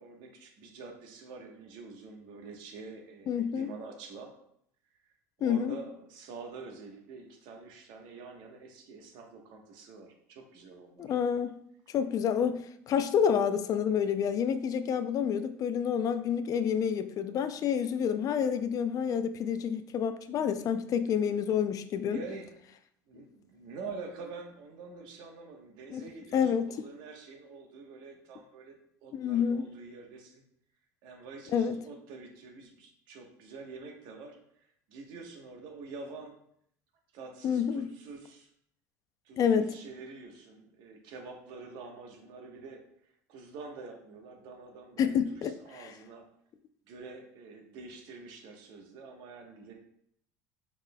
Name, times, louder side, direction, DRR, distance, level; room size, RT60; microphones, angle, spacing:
voice 1, 0.0-4.3 5.4-11.1 22.0-22.5 23.1-28.7 29.0-30.4 31.0-36.3 37.1-38.5 39.2-46.2 46.9-49.7, right 4 dB, 70° right, 2 dB, 1.1 m, -46 dB
voice 2, 3.3-3.7 5.4-5.8 11.0-11.5 11.9-22.2 25.9-26.0 26.3-26.7 29.1-29.7 31.5-31.8 37.4-37.9 39.4-39.7 45.0-45.9, left 7 dB, 45° left, 11 dB, 0.4 m, -28 dB
4.8 x 4.6 x 2.2 m, 0.70 s
supercardioid pair, 85°, 8 cm